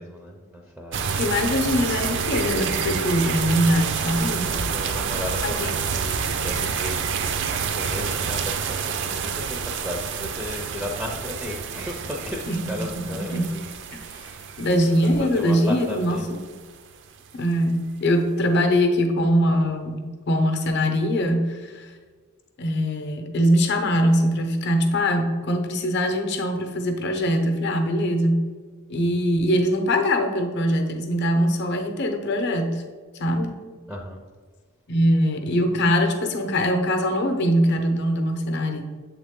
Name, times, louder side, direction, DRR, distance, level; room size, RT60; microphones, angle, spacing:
voice 1, 0.0-1.3 4.4-13.7 14.0-14.5 15.0-16.3 33.9-34.2, left 1 dB, ahead, 0 dB, 0.4 m, -35 dB
sound 1, 0.9-16.8, right 6 dB, 60° right, 0.4 m, -28 dB
voice 2, 1.1-4.5 5.4-5.7 12.5-12.7 13.0-13.5 14.6-16.4 17.4-21.9 22.6-28.5 28.9-32.8 33.2-33.6 34.9-38.8, equal, 55° left, 5 dB, 0.7 m, -22 dB
7.4 x 3.6 x 3.6 m, 1.5 s
head